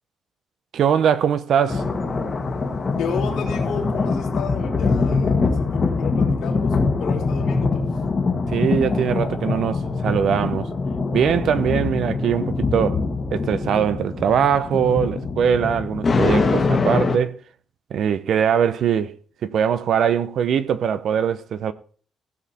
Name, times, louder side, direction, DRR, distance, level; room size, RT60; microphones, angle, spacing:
voice 1, 0.7-1.9 8.5-10.7 11.1-13.0 13.3-17.4 17.9-19.1 19.4-21.7, right 8 dB, 55° right, 0.8 m, -21 dB
sound 1, 1.7-17.2, left 4 dB, 25° left, 1.5 m, -23 dB
voice 2, 3.0-7.9, left 6 dB, 80° left, 2.9 m, -32 dB
16.0 x 7.4 x 4.3 m
cardioid pair, 180°, 0 cm